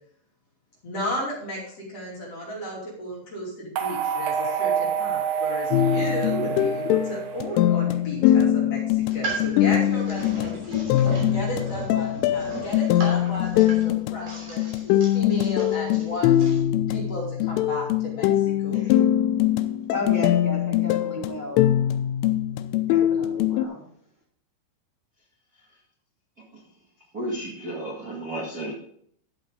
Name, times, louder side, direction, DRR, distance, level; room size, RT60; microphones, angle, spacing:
voice 1, 0.8-10.9 11.3-16.5 16.9-19.0, equal, 35° left, -4 dB, 3.3 m, -34 dB
sound 1, 3.8-8.0, right 7 dB, 90° right, 2.0 m, -28 dB
sound 2, 5.7-23.7, left 12 dB, 85° left, 3.1 m, -22 dB
sound 3, 9.0-16.6, right 3 dB, 35° right, 3.5 m, -37 dB
voice 2, 19.9-21.7 22.9-23.8, left 1 dB, 5° right, -5 dB, 2.9 m, -34 dB
voice 3, 27.1-28.7, right 1 dB, 65° right, -5 dB, 0.9 m, -32 dB
12.0 x 8.1 x 3.7 m, 0.64 s
omnidirectional pair, 5.7 m